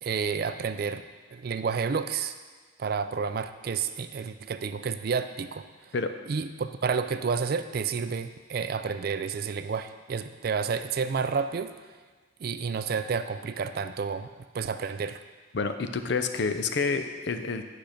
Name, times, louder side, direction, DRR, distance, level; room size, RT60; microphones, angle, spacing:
voice 1, 0.0-1.0 1.3-2.3 2.8-5.9 6.3-11.7 12.4-14.3 14.5-15.2, right 5 dB, 50° right, 10 dB, 0.3 m, -30 dB
voice 2, 15.5-17.6, left 4 dB, 55° left, 8 dB, 0.5 m, -28 dB
8.4 x 5.8 x 5.1 m, 1.5 s
head